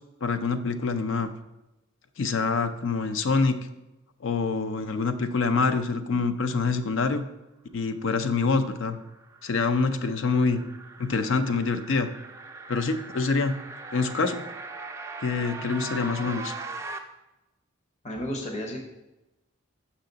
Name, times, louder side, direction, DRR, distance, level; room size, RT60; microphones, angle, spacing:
voice 1, 0.2-1.3 2.2-3.6 4.2-7.2 7.7-9.0 9.4-10.6 11.0-12.1 12.7-13.6 13.9-14.4 15.2-16.5, left 4 dB, 60° left, 10 dB, 0.4 m, -26 dB
sound 1, 8.6-17.0, right 3 dB, 15° right, 0.3 m, -40 dB
voice 2, 18.0-18.8, equal, 30° left, 2 dB, 0.8 m, -32 dB
5.8 x 5.7 x 3.9 m, 0.98 s
head